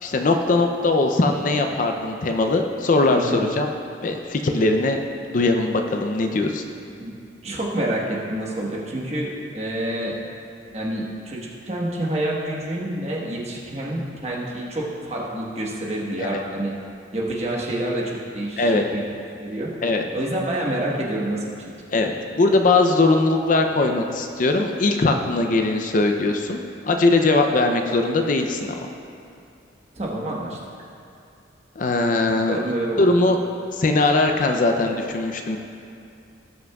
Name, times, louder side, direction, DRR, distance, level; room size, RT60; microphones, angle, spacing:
voice 1, 0.0-3.7 4.0-5.0 5.3-6.6 16.2-16.4 18.6-18.8 19.8-20.0 21.9-28.8 31.8-32.6 33.0-33.4 33.8-35.6, left 2 dB, 45° left, 4 dB, 0.5 m, -20 dB
voice 2, 7.4-10.2 10.7-16.7 17.1-19.0 19.4-19.7 20.1-21.4 29.9-30.6 32.5-33.0, right 1 dB, 35° right, -3 dB, 1.2 m, -27 dB
18.0 x 6.0 x 2.3 m, 2.5 s
head